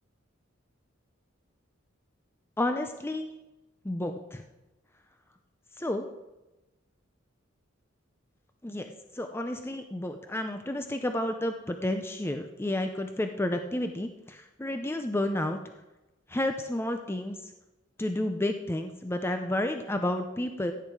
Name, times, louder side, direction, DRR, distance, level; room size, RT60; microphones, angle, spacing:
voice 1, 2.6-3.3 3.8-4.4 5.8-6.1 8.6-15.6 16.3-17.5 18.0-20.7, left 1 dB, 10° left, 6 dB, 0.6 m, -31 dB
16.0 x 8.8 x 4.7 m, 1.0 s
head